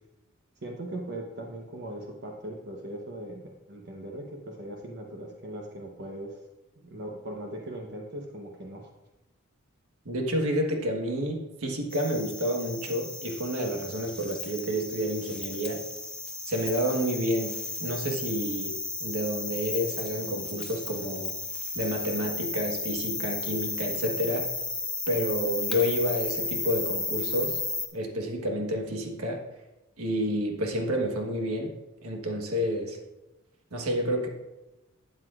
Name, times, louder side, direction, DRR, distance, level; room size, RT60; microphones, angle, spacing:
voice 1, 0.6-6.4 6.8-8.9, right 1 dB, 50° right, 0 dB, 1.0 m, -39 dB
voice 2, 10.0-15.8 16.4-18.7 19.0-21.3 21.7-24.5 25.1-27.6 27.9-29.4 30.0-31.7 32.0-33.0 33.7-34.3, equal, 90° right, 2 dB, 1.4 m, -29 dB
sound 1, 11.9-27.9, left 3 dB, 5° left, 0.8 m, -34 dB
12.5 x 7.9 x 2.5 m, 1.0 s
head